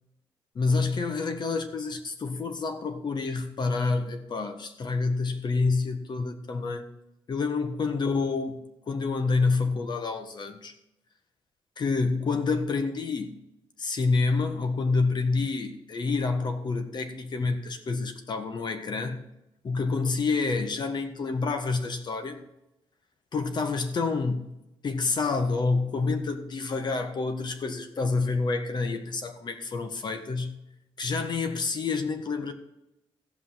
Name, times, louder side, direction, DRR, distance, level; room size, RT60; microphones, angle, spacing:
voice 1, 0.5-6.9 7.3-10.7 11.8-13.4 13.8-19.2 19.6-22.4 23.3-24.5 24.8-30.6 31.0-32.5, left 4 dB, 50° left, 7 dB, 1.5 m, -28 dB
15.0 x 5.7 x 5.7 m, 0.88 s
cardioid pair, 95°, 10 cm